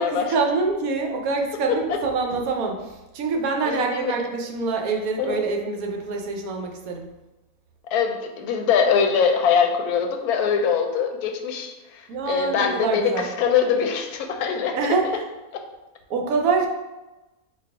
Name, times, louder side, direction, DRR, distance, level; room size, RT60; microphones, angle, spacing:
voice 1, 0.0-7.1 12.1-13.3 14.7-15.2 16.1-16.7, right 4 dB, 75° right, 2 dB, 1.1 m, -25 dB
voice 2, 1.7-2.0 3.6-4.2 5.2-5.4 7.9-14.8 15.5-15.6, left 6 dB, 85° left, 4 dB, 1.1 m, -23 dB
4.3 x 2.3 x 4.6 m, 1.1 s
omnidirectional pair, 1.6 m